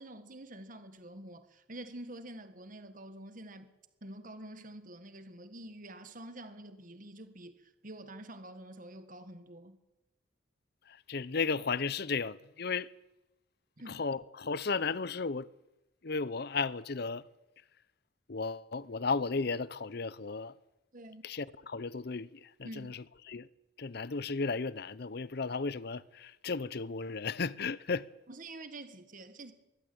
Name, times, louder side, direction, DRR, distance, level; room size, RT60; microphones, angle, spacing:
voice 1, 0.0-3.7 4.0-9.8 13.8-14.0 20.9-21.2 22.6-22.9 28.3-29.5, right 1 dB, 45° right, 1.7 m, -47 dB
voice 2, 10.9-12.9 13.9-15.5 16.0-17.2 18.3-20.6 21.2-23.5 23.8-28.1, left 4 dB, 60° left, 0.7 m, -34 dB
22.5 x 15.5 x 8.7 m
head